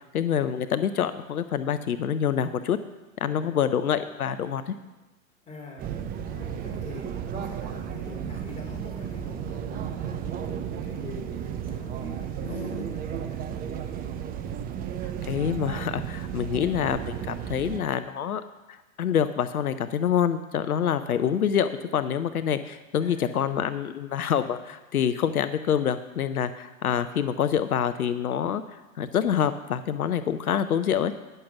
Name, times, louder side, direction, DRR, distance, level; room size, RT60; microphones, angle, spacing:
voice 1, 0.0-2.8 3.2-4.8 15.0-18.4 18.7-28.6 29.0-31.1, left 8 dB, 85° left, 12 dB, 0.6 m, -26 dB
voice 2, 3.3-3.7 4.4-4.8 5.4-5.9 6.3-13.7 23.0-23.6, left 2 dB, 15° left, -2 dB, 3.1 m, -43 dB
sound 1, 5.8-17.8, right 9 dB, 20° right, 0.6 m, -34 dB
10.0 x 6.7 x 5.9 m, 1.1 s
hypercardioid pair, 105°, 43 cm